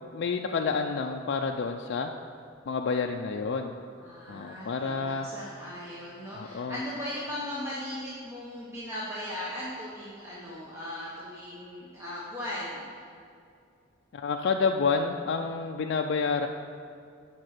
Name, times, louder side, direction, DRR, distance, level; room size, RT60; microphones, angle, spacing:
voice 1, 0.1-2.1 2.7-3.8 4.3-5.3 6.3-6.8 14.1-16.5, left 5 dB, 55° left, 3 dB, 0.4 m, -29 dB
voice 2, 4.0-12.8, left 1 dB, 15° right, -7 dB, 1.1 m, -38 dB
8.7 x 5.3 x 6.4 m, 2.4 s
head